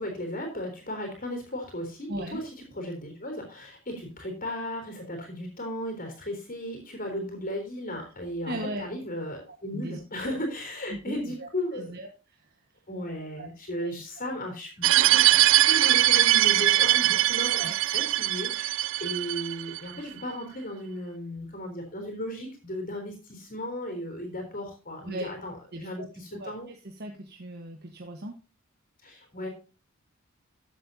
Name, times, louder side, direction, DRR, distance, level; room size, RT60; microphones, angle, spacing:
voice 1, 0.0-11.9 12.9-26.7 29.0-29.5, equal, 45° left, 3 dB, 3.6 m, -36 dB
voice 2, 2.1-2.4 8.0-8.1 8.5-8.9 9.5-10.4 10.9-12.6 13.4-13.5 13.8-14.0 17.4-17.8 25.0-25.3 25.7-26.1 26.3-28.4, right 1 dB, 50° right, 3 dB, 1.3 m, -38 dB
sound 1, 14.8-19.8, right 14 dB, 65° right, 0.4 m, -21 dB
14.5 x 7.7 x 2.7 m, 0.32 s
head